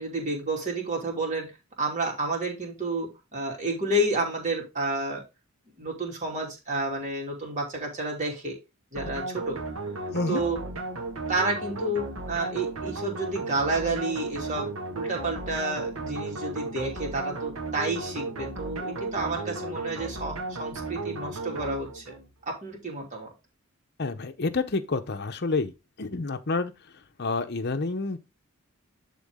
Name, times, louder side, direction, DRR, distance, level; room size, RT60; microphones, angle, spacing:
voice 1, 0.0-1.5 1.8-5.2 5.8-8.6 8.9-9.6 10.3-10.6 11.3-22.1 22.5-23.3, right 2 dB, 35° right, 2.9 m, -30 dB
sound 1, 9.0-22.3, right 2 dB, 85° right, 1.8 m, -35 dB
voice 2, 10.1-10.4 24.0-26.7 27.2-28.2, left 3 dB, 50° left, 0.8 m, -29 dB
11.5 x 3.8 x 3.6 m
head